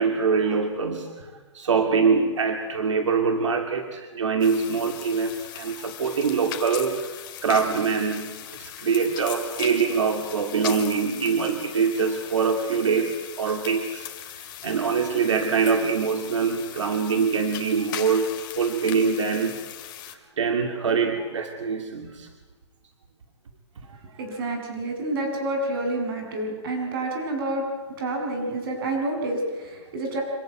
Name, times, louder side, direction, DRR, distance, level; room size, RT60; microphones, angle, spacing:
voice 1, 0.0-14.1 14.6-19.7 20.1-22.3 23.9-24.0, right 5 dB, 85° right, 5 dB, 2.5 m, -24 dB
sound 1, 4.4-20.2, left 11 dB, 45° left, 2.6 m, -39 dB
voice 2, 24.2-27.6 28.0-30.2, right 2 dB, 50° right, 2 dB, 7.7 m, -28 dB
26.5 x 15.0 x 9.2 m, 1.4 s
hypercardioid pair, 155°, 15 cm